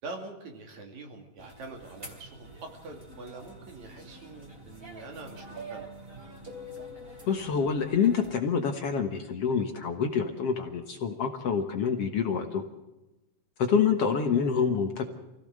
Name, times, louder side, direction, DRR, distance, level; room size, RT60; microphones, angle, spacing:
voice 1, 0.0-5.9, right 3 dB, 60° right, 3 dB, 3.9 m, -44 dB
sound 1, 1.4-8.3, right 1 dB, 15° right, 3.3 m, -46 dB
voice 2, 7.3-12.6 13.6-15.1, left 6 dB, 55° left, 5 dB, 2.0 m, -27 dB
25.0 x 16.0 x 6.6 m, 1.0 s
omnidirectional pair, 3.7 m